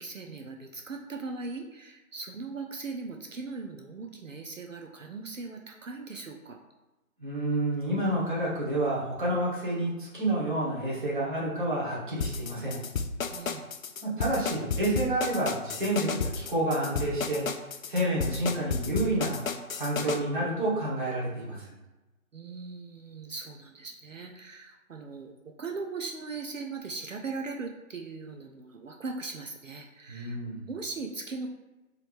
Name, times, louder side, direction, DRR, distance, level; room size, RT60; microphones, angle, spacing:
voice 1, 0.0-6.6 13.3-13.7 22.3-30.4 30.7-31.5, right 4 dB, 65° right, 2 dB, 0.6 m, -39 dB
voice 2, 7.2-12.8 14.0-17.4 17.9-19.4 19.7-21.8 30.1-30.6, right 1 dB, 35° right, -6 dB, 1.4 m, -29 dB
sound 1, 12.2-20.2, left 5 dB, 75° left, 0.6 m, -32 dB
4.7 x 3.1 x 3.4 m, 1.1 s
figure-of-eight pair, 160°, 42 cm